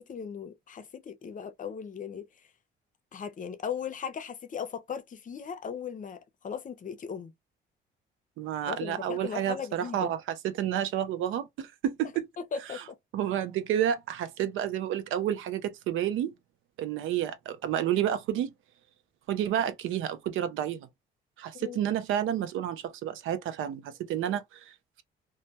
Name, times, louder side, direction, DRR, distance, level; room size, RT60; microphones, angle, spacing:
voice 1, 0.0-2.3 3.1-7.3 8.7-10.1 12.4-13.0 21.5-21.8, left 7 dB, 40° left, 0.6 m, -38 dB
voice 2, 8.4-12.3 12.7-12.8 13.1-16.3 16.8-18.5 19.3-20.9 21.4-25.0, right 10 dB, 85° right, 0.5 m, -30 dB
2.2 x 2.1 x 2.7 m
cardioid pair, 90°, 20 cm